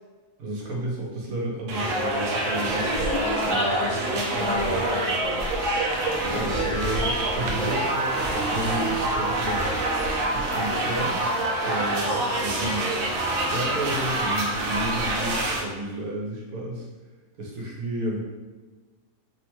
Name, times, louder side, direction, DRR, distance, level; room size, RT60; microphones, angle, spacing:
voice 1, 0.4-3.1 3.4-3.6 6.3-9.7 10.3-11.2 11.6-12.9 13.4-16.9 17.4-18.2, right 1 dB, 85° right, -3 dB, 1.2 m, -32 dB
sound 1, 1.7-15.6, right 1 dB, 70° right, 0.8 m, -26 dB
voice 2, 2.8-5.5, left 1 dB, 85° left, -7 dB, 1.2 m, -31 dB
3.2 x 2.1 x 3.0 m, 1.3 s
omnidirectional pair, 1.5 m